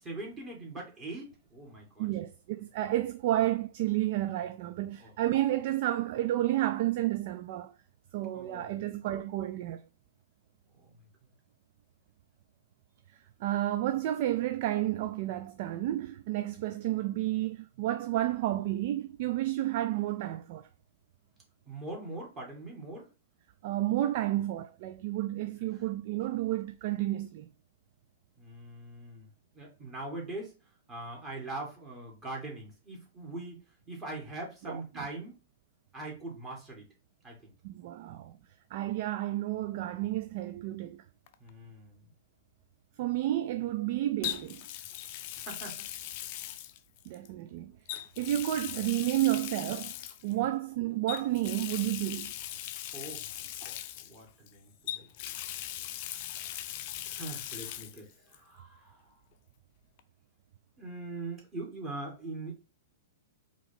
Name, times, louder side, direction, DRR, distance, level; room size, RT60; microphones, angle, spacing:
voice 1, 0.0-2.1 5.0-5.1 8.3-8.7 21.7-23.1 28.4-29.3 29.5-30.5 30.9-33.6 33.9-35.4 35.9-36.9 37.2-37.5 41.4-42.0 45.4-45.9 50.3-50.4 52.9-55.1 57.0-59.0 60.8-62.5, right 2 dB, 25° right, 2.3 m, -42 dB
voice 2, 2.0-7.7 8.1-9.8 13.4-20.7 23.6-27.5 34.7-35.1 37.6-38.4 38.7-41.0 43.0-44.6 47.1-47.7 48.2-49.9 50.2-52.3, right 14 dB, 50° right, 0.3 m, -31 dB
Water tap faucet, 41.3-41.5 44.2-47.3 47.9-50.3 51.1-54.5 54.9-58.0 58.3-58.4 60.0-60.1, left 13 dB, 45° left, 0.4 m, -40 dB
4.6 x 2.9 x 3.5 m
figure-of-eight pair, 110°, 0 cm